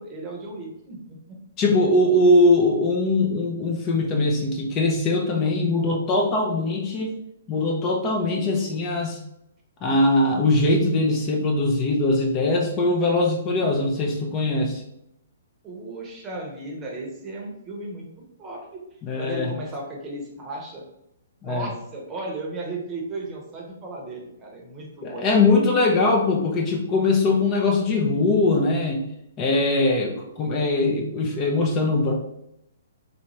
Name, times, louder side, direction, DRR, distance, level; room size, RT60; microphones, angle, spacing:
voice 1, 0.0-1.4 15.6-18.1 18.4-18.8 19.2-20.8 21.4-25.6, right 2 dB, 20° right, -1 dB, 0.9 m, -35 dB
voice 2, 1.6-7.2 7.5-9.2 9.8-14.8 19.0-19.5 21.4-21.7 25.0-29.0 29.4-32.1, left 2 dB, 30° left, 0 dB, 0.6 m, -21 dB
3.3 x 2.6 x 3.1 m, 0.80 s
figure-of-eight pair, 125°, 0 cm